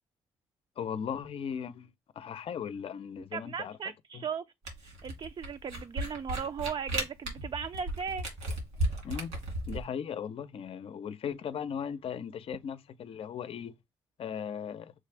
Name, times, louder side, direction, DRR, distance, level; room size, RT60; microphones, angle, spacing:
voice 1, 0.8-3.8 4.1-4.2 9.0-9.3 9.7-13.7 14.2-14.9, left 7 dB, 55° left, 0.5 m, -37 dB
voice 2, 3.3-4.4 5.0-8.2, right 6 dB, 45° right, 0.5 m, -37 dB
Camera, 4.7-9.8, right 1 dB, 85° right, 2.2 m, -34 dB
6.1 x 2.4 x 3.3 m
supercardioid pair, 55°, 11 cm